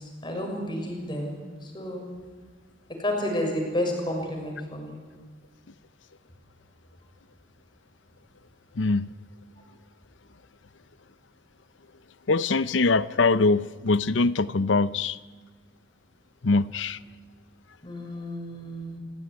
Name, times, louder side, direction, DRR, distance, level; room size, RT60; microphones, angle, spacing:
voice 1, 0.0-2.0 3.0-5.0 17.8-19.0, left 1 dB, 25° left, 6.4 m, -31 dB
voice 2, 8.8-9.1 12.3-15.2 16.4-17.0, left 3 dB, 90° left, 0.7 m, -23 dB
28.0 x 17.0 x 9.8 m
head